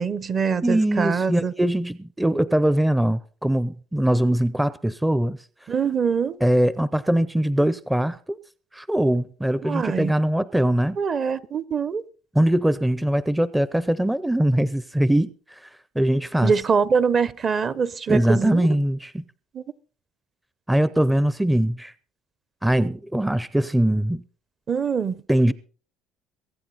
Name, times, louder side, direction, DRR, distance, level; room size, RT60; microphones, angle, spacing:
voice 1, 0.0-1.5 5.7-6.4 9.6-10.1 11.0-12.0 16.4-18.7 19.5-19.6 24.7-25.2, right 6 dB, 40° right, 0.8 m, -24 dB
voice 2, 0.6-5.4 6.4-8.4 8.7-11.0 12.3-15.7 16.0-16.5 18.1-19.2 20.7-21.9 22.6-24.2 25.3-25.5, right 1 dB, 5° right, 0.5 m, -22 dB
23.0 x 8.9 x 4.0 m
cardioid pair, 100°, 0 cm